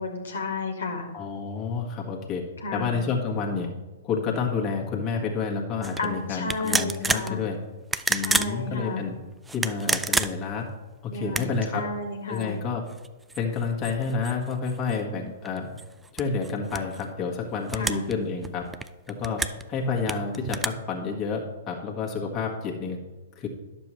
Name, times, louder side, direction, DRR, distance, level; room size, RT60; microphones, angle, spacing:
voice 1, 0.0-1.1 2.6-3.0 6.0-7.4 8.1-9.0 11.1-12.6 17.7-18.0 19.4-19.5, left 3 dB, 70° left, 3 dB, 1.6 m, -32 dB
voice 2, 1.1-2.4 2.7-3.7 4.0-7.6 8.1-9.1 9.5-10.7 11.0-11.9 12.3-12.8 13.4-15.7 16.1-18.7 19.1-19.4 19.7-23.0 23.3-23.5, left 5 dB, 30° left, -1 dB, 1.5 m, -29 dB
sound 1, 5.8-6.1 6.5-7.3 7.8-8.5 9.5-10.6 11.2-11.7 12.4-12.5 12.9-15.0 15.5-17.0 17.7-18.1 18.4-19.6 20.1-20.7, right 3 dB, 10° right, 0.3 m, -29 dB
11.0 x 6.9 x 3.1 m, 1.1 s
figure-of-eight pair, 115°, 0 cm